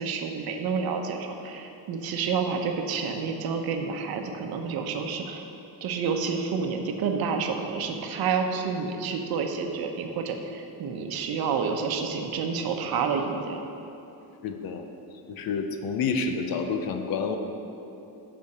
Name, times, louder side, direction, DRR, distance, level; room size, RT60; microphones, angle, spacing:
voice 1, 0.0-5.4 5.8-13.6, right 5 dB, 65° right, 4 dB, 0.9 m, -29 dB
voice 2, 14.4-14.9 15.3-17.4, left 5 dB, 65° left, 6 dB, 0.8 m, -29 dB
8.5 x 5.5 x 6.7 m, 2.9 s
cardioid pair, 170°, 39 cm